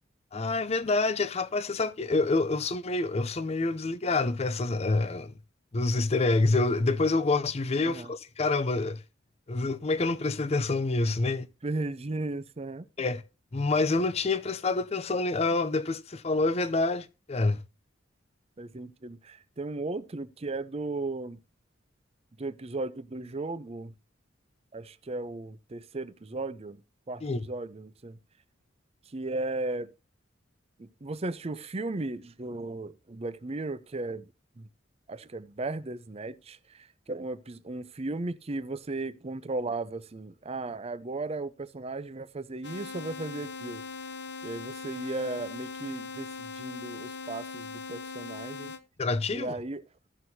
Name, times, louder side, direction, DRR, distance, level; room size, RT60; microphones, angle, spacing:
voice 1, 0.3-5.3 5.7-9.0 9.5-11.5 13.0-13.2 13.5-17.6 27.2-27.4 49.0-49.5, left 3 dB, 35° left, 0.5 m, -27 dB
voice 2, 11.6-12.9 18.6-21.4 22.4-23.9 24.7-26.8 27.1-28.2 29.1-29.9 30.8-34.3 34.6-34.7 35.1-43.8 44.4-48.7 49.3-49.8, right 2 dB, 30° right, 0.6 m, -36 dB
sound 1, 42.6-48.8, left 4 dB, 60° left, 0.8 m, -40 dB
16.0 x 6.2 x 2.7 m
head